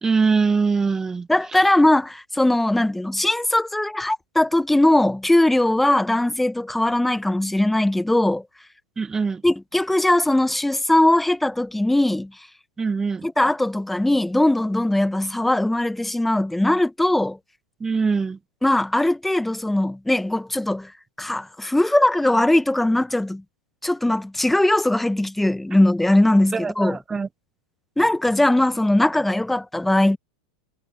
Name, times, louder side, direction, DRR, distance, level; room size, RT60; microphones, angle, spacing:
voice 1, 0.0-1.3 9.0-9.4 12.8-13.3 17.8-18.4 26.5-27.3, right 5 dB, 15° right, 0.7 m, -22 dB
voice 2, 1.3-8.4 9.4-12.3 13.2-17.4 18.6-20.9 21.2-23.4 23.8-27.0 28.0-30.2, left 1 dB, 5° left, 1.2 m, -20 dB
hypercardioid pair, 100°, 3 cm